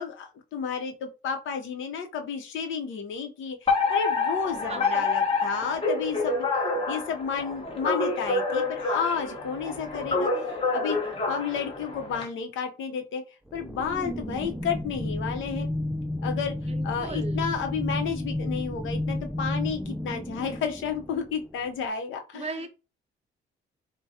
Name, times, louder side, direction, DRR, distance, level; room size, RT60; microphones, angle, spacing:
voice 1, 0.0-6.5 6.9-11.0 11.3-13.2 13.5-15.7 16.2-16.5 16.8-22.7, left 6 dB, 80° left, 0.8 m, -32 dB
Alarm, 3.7-12.2, left 3 dB, 30° left, 1.2 m, -27 dB
voice 2, 4.7-5.0 16.5-17.5 22.3-22.7, right 3 dB, 30° right, 0.7 m, -37 dB
sound 1, 13.5-21.7, left 1 dB, 5° right, 0.3 m, -32 dB
4.6 x 2.2 x 2.8 m
cardioid pair, 90°, 20 cm